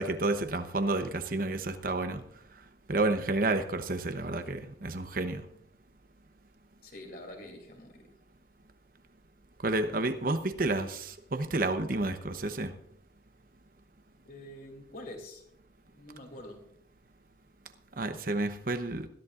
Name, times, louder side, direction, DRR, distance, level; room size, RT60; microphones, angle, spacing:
voice 1, 0.0-2.2 2.9-5.4 9.6-12.7 18.0-19.1, right 2 dB, 45° right, 0.9 m, -30 dB
voice 2, 6.8-8.1 14.2-15.4 15.9-16.6, left 1 dB, 50° left, 3.0 m, -46 dB
21.0 x 13.5 x 2.5 m
head